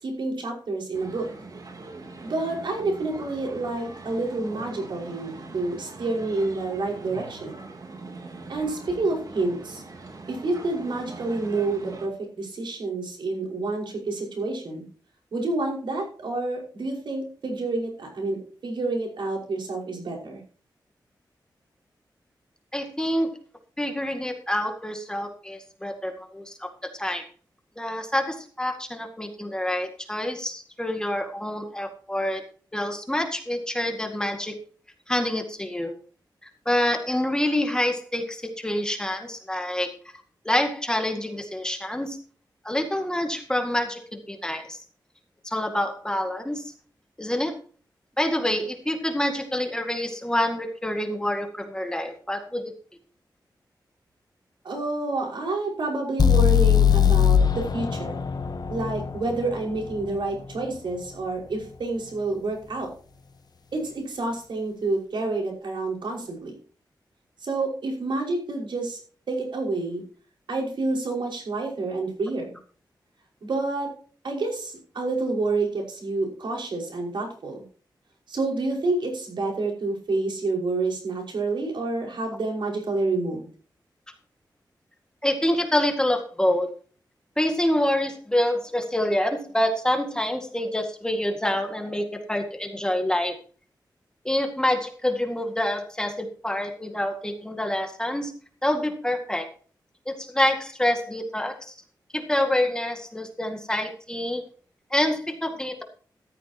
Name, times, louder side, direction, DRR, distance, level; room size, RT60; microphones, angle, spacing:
voice 1, 0.0-1.3 2.2-7.6 8.5-9.8 10.3-14.9 15.3-20.4 54.6-58.2 58.7-62.9 63.7-66.5 67.4-69.0 69.3-70.0 70.5-72.5 73.4-73.9 74.2-77.6 78.3-83.5, right 3 dB, 80° right, 1 dB, 5.5 m, -28 dB
sound 1, 0.9-12.1, right 3 dB, 50° right, 3.0 m, -42 dB
voice 2, 22.7-23.3 23.8-27.3 27.8-32.4 32.7-34.6 35.1-35.9 36.7-39.9 40.5-42.2 42.6-44.0 44.3-44.8 45.4-46.6 47.2-47.5 48.2-52.6 85.2-86.7 87.4-93.4 94.3-98.3 98.6-99.5 100.1-101.7 102.1-104.4 104.9-105.8, left 1 dB, 10° left, 4 dB, 2.0 m, -26 dB
sound 2, 56.2-60.1, left 8 dB, 60° left, 1.1 m, -20 dB
14.5 x 12.5 x 2.9 m, 0.41 s
wide cardioid pair, 135°, 8 cm